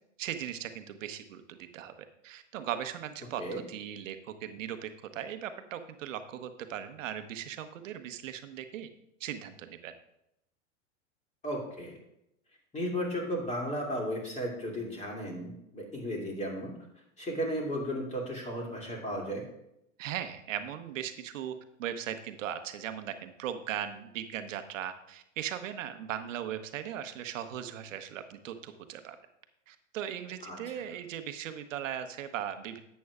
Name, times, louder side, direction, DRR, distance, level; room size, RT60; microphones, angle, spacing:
voice 1, 0.2-1.9 2.2-8.9 9.2-9.9 20.0-29.2 29.7-32.8, right 10 dB, 80° right, 9 dB, 1.0 m, -38 dB
voice 2, 11.4-11.9 12.7-16.7 17.2-19.4 30.4-30.6, equal, 20° left, -1 dB, 2.6 m, -34 dB
11.0 x 8.3 x 2.4 m, 0.81 s
hypercardioid pair, 110°, 38 cm